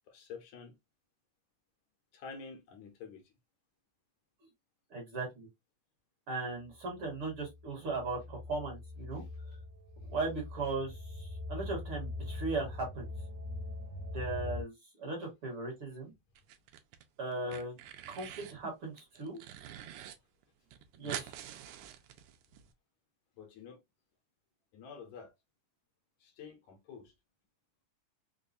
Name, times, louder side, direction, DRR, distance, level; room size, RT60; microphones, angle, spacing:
voice 1, 0.1-0.8 2.1-3.2 9.2-9.3 18.6-18.7 23.4-23.8 24.7-25.3 26.2-27.1, left 5 dB, 75° left, 1.9 m, -49 dB
voice 2, 4.9-5.5 6.3-9.2 10.0-13.1 14.1-16.1 17.2-17.8 18.1-19.4 21.0-21.3, right 3 dB, 50° right, 1.9 m, -38 dB
sound 1, 7.0-14.6, left 2 dB, 5° left, 0.7 m, -42 dB
sound 2, 16.4-17.0 17.3-18.6 19.0-20.1 20.4-20.5 20.7-22.6, right 11 dB, 80° right, 1.9 m, -45 dB
5.2 x 2.1 x 2.5 m
omnidirectional pair, 3.6 m